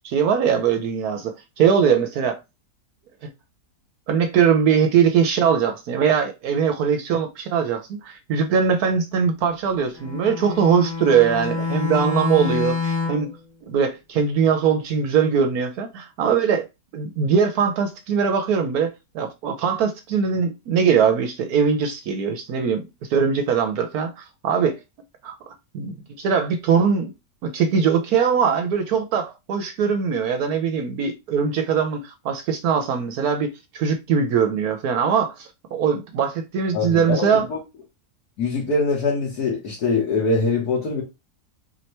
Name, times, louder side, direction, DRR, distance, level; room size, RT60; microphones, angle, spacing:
voice 1, 0.0-2.4 4.1-13.3 13.7-16.7 16.9-24.8 25.2-25.4 25.7-27.1 27.4-37.5, right 6 dB, 70° right, 1.0 m, -21 dB
Bowed string instrument, 10.0-13.4, left 4 dB, 90° left, 1.9 m, -27 dB
voice 2, 36.7-37.6 38.4-41.0, left 3 dB, 65° left, 1.7 m, -23 dB
4.4 x 2.9 x 3.1 m
omnidirectional pair, 1.8 m